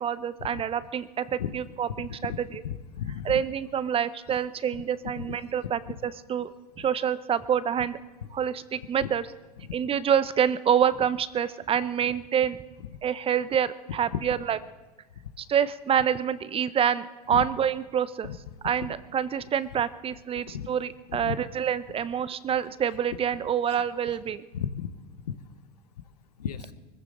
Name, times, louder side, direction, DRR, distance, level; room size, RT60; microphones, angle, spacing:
voice 1, 0.0-2.3 3.2-6.5 6.8-8.0 8.3-9.2 9.7-12.6 13.0-14.6 15.4-18.3 18.6-24.4, right 8 dB, 30° right, 16 dB, 0.7 m, -27 dB
voice 2, 2.0-2.4 2.6-3.4 5.2-5.3 5.8-5.9 6.8-6.9 8.2-8.3 9.0-9.1 9.6-9.7 14.1-14.2 17.3-17.4 18.2-18.4 18.6-18.9 20.5-20.7 21.1-21.4 24.1-24.2 24.5-24.9 25.3-25.4 26.4-26.7, left 9 dB, 80° left, 11 dB, 1.0 m, -34 dB
24.0 x 14.5 x 3.9 m, 1.2 s
hypercardioid pair, 85°, 20 cm